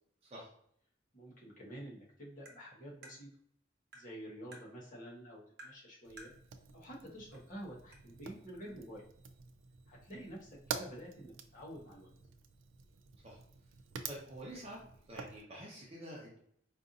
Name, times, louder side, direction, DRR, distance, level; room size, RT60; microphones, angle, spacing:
voice 1, 1.1-3.3 3.9-6.3 6.7-9.0 9.9-12.1, equal, 45° left, -4 dB, 1.4 m, -49 dB
Tap, 2.5-2.6 3.0-3.2 3.9-4.1 4.5-4.7 5.6-5.8 6.2-6.4 7.3-7.4 7.9-8.0, right 1 dB, 60° right, 1.1 m, -52 dB
Fire, 6.0-15.4, right 6 dB, 85° right, 0.4 m, -48 dB
voice 2, 14.1-14.8 15.1-16.4, right 1 dB, 35° right, -4 dB, 0.9 m, -47 dB
4.8 x 2.6 x 2.6 m, 0.67 s
head